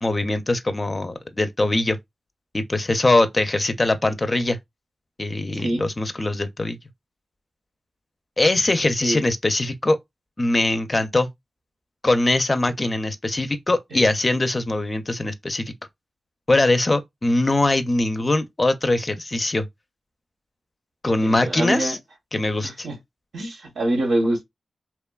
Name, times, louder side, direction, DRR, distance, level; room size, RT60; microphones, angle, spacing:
voice 1, 0.0-2.0 2.5-4.6 5.2-6.8 8.4-10.0 10.4-11.3 12.0-15.7 16.5-19.7 21.0-22.0 22.3-22.9, left 2 dB, 35° left, 0.4 m, -22 dB
voice 2, 21.2-21.9 22.6-23.0 23.3-24.4, right 1 dB, 85° right, 0.9 m, -25 dB
2.9 x 2.2 x 2.2 m
cardioid pair, 60°, 0 cm